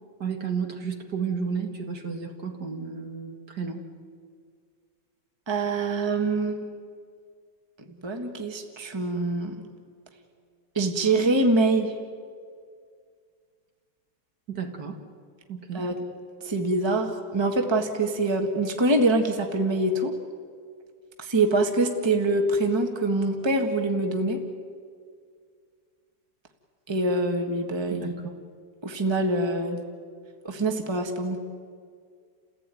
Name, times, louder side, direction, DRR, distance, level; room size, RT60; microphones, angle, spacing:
voice 1, 0.2-3.9 14.5-15.0 15.5-15.9 27.9-28.3, right 6 dB, 55° right, 3 dB, 2.3 m, -32 dB
voice 2, 5.5-6.7 8.0-9.5 10.7-11.9 15.7-16.0 16.4-20.1 21.2-24.4 26.9-28.1 28.8-29.8 30.4-31.4, right 2 dB, 15° right, 4 dB, 1.6 m, -24 dB
30.0 x 16.0 x 9.2 m, 2.1 s
omnidirectional pair, 2.2 m